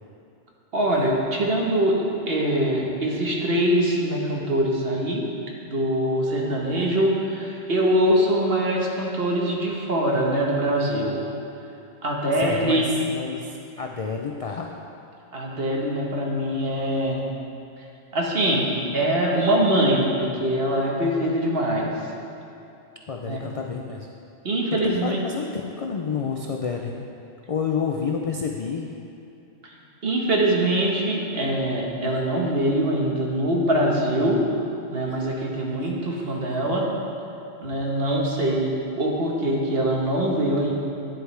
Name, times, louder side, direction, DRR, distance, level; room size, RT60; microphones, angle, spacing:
voice 1, 0.7-5.2 5.7-11.2 12.0-12.9 15.3-17.2 18.1-21.9 23.3-23.5 24.4-25.2 29.6-29.7 30.0-34.4 34.9-36.9 37.6-40.7, right 1 dB, 60° right, -2 dB, 1.4 m, -23 dB
voice 2, 12.4-14.7 23.1-24.1 24.7-27.1 27.5-28.9 37.7-37.8, left 5 dB, 60° left, 1 dB, 0.3 m, -29 dB
10.0 x 8.0 x 3.2 m, 2.7 s
omnidirectional pair, 1.2 m